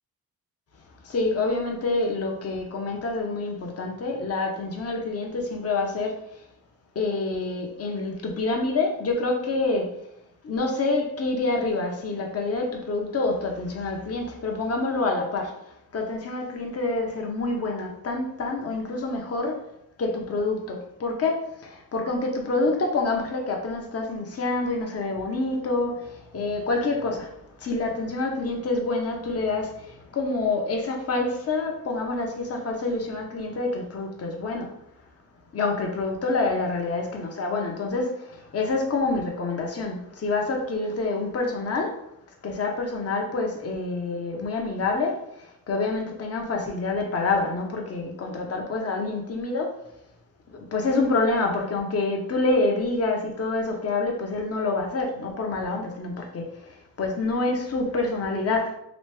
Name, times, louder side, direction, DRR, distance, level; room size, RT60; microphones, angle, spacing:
voice 1, 1.0-6.1 6.9-10.0 10.4-19.6 20.0-27.3 27.6-34.7 35.5-42.0 42.4-49.8 50.5-58.7, left 3 dB, 40° left, 1 dB, 0.8 m, -27 dB
3.1 x 2.6 x 3.3 m, 0.78 s
cardioid pair, 80°, 37 cm